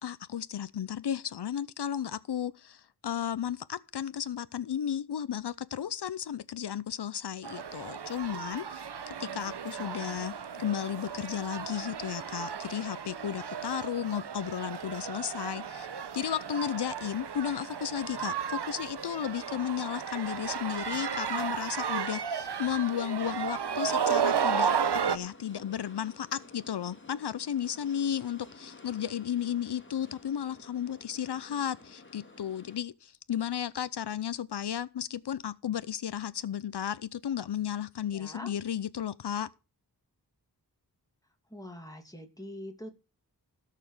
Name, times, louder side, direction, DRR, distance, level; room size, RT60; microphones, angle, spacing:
voice 1, 0.0-15.9 16.1-39.5, left 9 dB, 80° left, 0.6 m, -34 dB
sound 1, 7.4-25.2, right 7 dB, 80° right, 0.9 m, -34 dB
voice 2, 9.1-10.2 38.1-38.5 41.5-42.9, left 1 dB, 10° left, 2.6 m, -45 dB
sound 2, 23.2-32.8, left 2 dB, 30° left, 2.9 m, -52 dB
17.0 x 6.7 x 4.9 m
wide cardioid pair, 65°, 40 cm